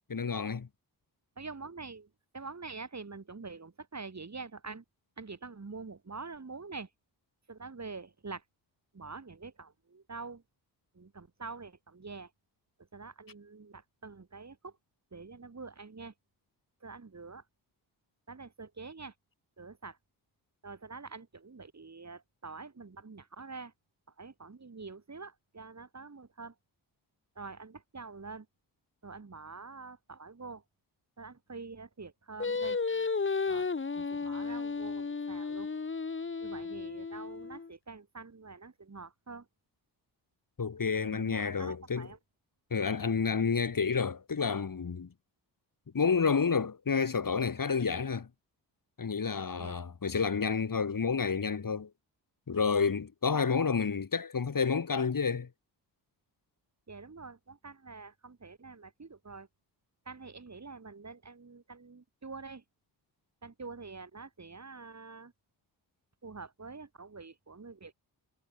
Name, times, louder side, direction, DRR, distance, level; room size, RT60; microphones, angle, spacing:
voice 1, 0.1-0.7 40.6-42.1 42.7-45.1 45.9-48.3 49.0-51.9 52.5-55.5, left 5 dB, 45° left, 4.4 m, -30 dB
voice 2, 1.4-2.1 2.3-4.8 5.2-6.9 7.5-8.4 8.9-10.4 10.9-12.3 12.9-14.7 15.1-16.1 16.8-17.4 18.3-19.1 19.6-20.0 20.6-23.7 24.2-26.5 27.3-28.5 29.0-30.6 31.2-32.8 33.5-33.7 33.9-35.7 36.4-39.4 41.0-42.2 49.6-49.8 56.9-59.5 60.0-62.6 63.4-65.3 66.2-67.9, right 4 dB, 35° right, 6.7 m, -46 dB
Singing, 32.4-37.7, left 4 dB, 25° left, 1.5 m, -33 dB
supercardioid pair, 50°, 46 cm